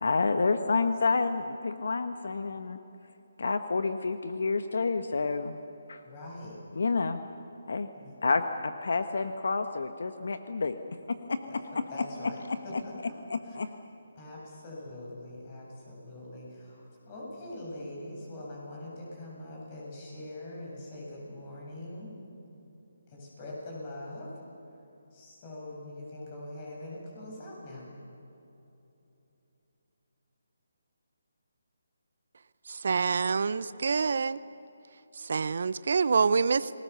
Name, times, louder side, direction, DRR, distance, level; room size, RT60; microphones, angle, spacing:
voice 1, 0.0-2.8 3.4-5.6 5.9-6.0 6.7-7.2 7.7-7.9 8.2-10.8 11.1-11.8 12.7-12.8 13.3-13.7, left 4 dB, 70° left, 9 dB, 1.1 m, -29 dB
voice 2, 6.0-6.6 8.0-8.1 11.5-11.6 11.9-13.1 13.4-13.6 14.2-22.1 23.1-24.3 25.1-27.9, left 1 dB, 25° left, -3 dB, 7.3 m, -43 dB
voice 3, 32.7-34.4 35.2-36.7, right 5 dB, 60° right, 17 dB, 0.6 m, -26 dB
29.0 x 20.0 x 6.9 m, 3.0 s
hypercardioid pair, 165°, 0 cm